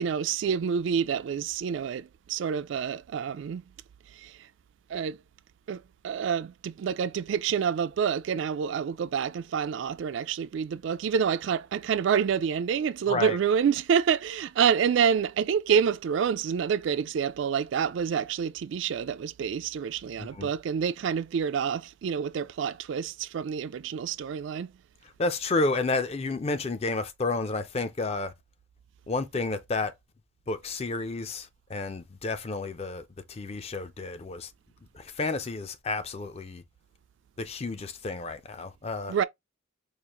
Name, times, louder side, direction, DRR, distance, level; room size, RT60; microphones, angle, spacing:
voice 1, 0.0-3.6 4.2-4.3 4.9-5.2 5.7-24.7 39.1-39.2, right 7 dB, 65° right, 0.3 m, -27 dB
voice 2, 20.2-20.5 25.2-28.3 29.1-29.9 30.5-34.5 34.9-36.6 37.4-39.1, left 3 dB, 30° left, 0.4 m, -31 dB
4.9 x 2.4 x 2.9 m
head